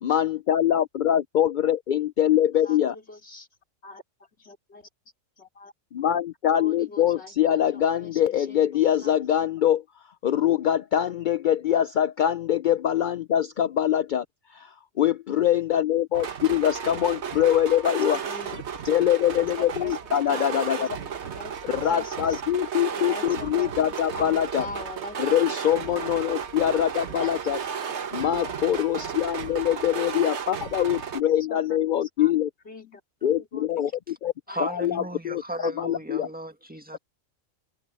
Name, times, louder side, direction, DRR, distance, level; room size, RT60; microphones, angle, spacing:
voice 1, 0.0-2.9 5.9-9.8 10.2-14.2 14.5-14.7 15.0-18.2 18.9-20.9 21.7-24.7 25.2-27.6 28.1-32.5 33.2-34.3 34.6-36.3, left 10 dB, 70° left, 0.4 m, -24 dB
voice 2, 2.5-3.5 3.8-4.0 4.4-4.9 5.4-5.7 6.6-9.2 18.0-18.6 19.2-22.4 22.9-25.4 25.7-26.5 27.1-27.6 27.8-27.9 28.3-28.7 29.0-29.2 31.2-32.3 32.6-33.7 34.5-34.9 35.6-35.7, left 3 dB, 55° left, 3.7 m, -43 dB
sound 1, 16.1-31.2, right 7 dB, 60° right, 1.4 m, -34 dB
voice 3, 34.5-37.0, right 1 dB, 5° right, 1.9 m, -34 dB
open air
omnidirectional pair, 1.4 m